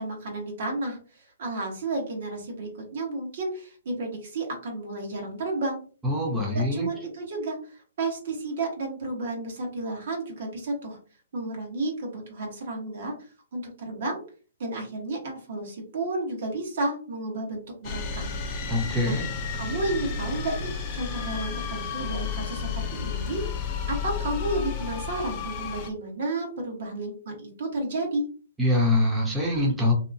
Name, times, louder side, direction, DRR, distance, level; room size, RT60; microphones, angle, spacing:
voice 1, 0.0-5.8 6.5-11.0 11.3-13.1 13.5-14.2 14.6-18.3 19.0-19.2 19.5-28.2, right 2 dB, 60° right, 1 dB, 1.2 m, -32 dB
voice 2, 6.0-6.9 18.7-19.2 28.6-29.9, left 1 dB, 5° right, -3 dB, 0.8 m, -24 dB
sound 1, 17.8-25.9, left 6 dB, 35° left, 0.5 m, -32 dB
2.7 x 2.3 x 2.6 m, 0.39 s
hypercardioid pair, 140°, 0 cm